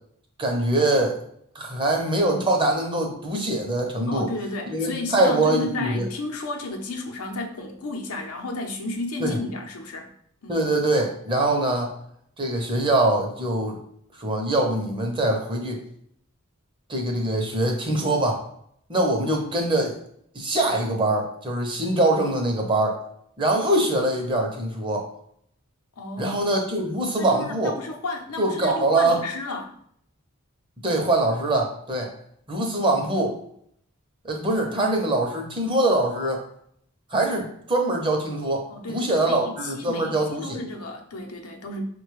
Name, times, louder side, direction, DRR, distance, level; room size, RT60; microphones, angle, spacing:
voice 1, 0.4-1.2 1.5-4.3 4.7-6.1 9.2-9.4 10.5-11.9 12.4-13.8 14.1-15.8 16.9-18.4 18.9-19.9 20.3-23.0 23.4-25.1 26.2-27.7 28.4-29.2 30.8-32.1 32.5-33.4 34.2-36.4 37.1-40.6, right 2 dB, 25° right, 1 dB, 0.6 m, -23 dB
voice 2, 4.1-10.1 10.4-10.6 26.0-26.4 27.2-29.7 38.7-41.8, left 2 dB, 90° left, 2 dB, 0.7 m, -33 dB
5.3 x 2.2 x 3.1 m, 0.68 s
head